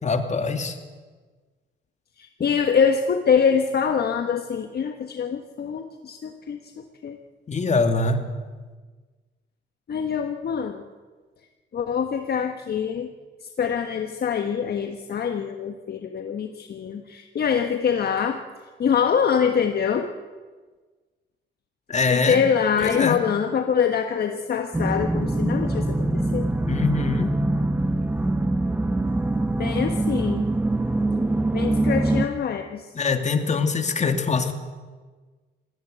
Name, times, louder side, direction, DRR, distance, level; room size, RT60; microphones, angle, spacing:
voice 1, 0.0-0.8 7.5-8.2 21.9-22.5 22.8-23.2 26.7-27.3 32.9-34.5, left 4 dB, 35° left, 6 dB, 2.6 m, -23 dB
voice 2, 2.2-6.7 7.0-7.2 9.9-10.8 11.7-13.1 13.6-18.4 18.8-20.1 22.1-26.1 26.3-26.5 29.6-30.5 31.5-32.9, left 7 dB, 55° left, 6 dB, 1.4 m, -24 dB
sound 1, 24.7-32.3, right 2 dB, 10° right, 1.1 m, -23 dB
20.0 x 15.5 x 9.4 m, 1.4 s
cardioid pair, 90°, 20 cm